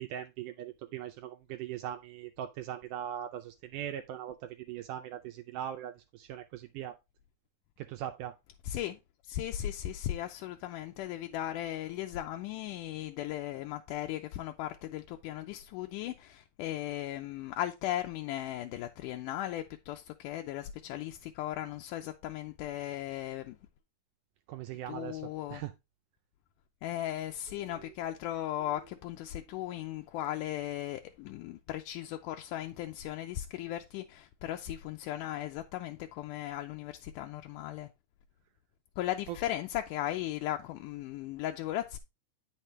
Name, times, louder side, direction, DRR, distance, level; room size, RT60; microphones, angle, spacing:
voice 1, 0.0-6.9 7.8-8.4 24.5-25.7 27.6-27.9 39.3-39.4, right 11 dB, 80° right, 1.9 m, -40 dB
voice 2, 8.7-9.0 9.3-23.6 24.9-25.6 26.8-37.9 39.0-42.0, left 13 dB, 80° left, 2.0 m, -37 dB
9.1 x 5.8 x 3.2 m
omnidirectional pair, 4.0 m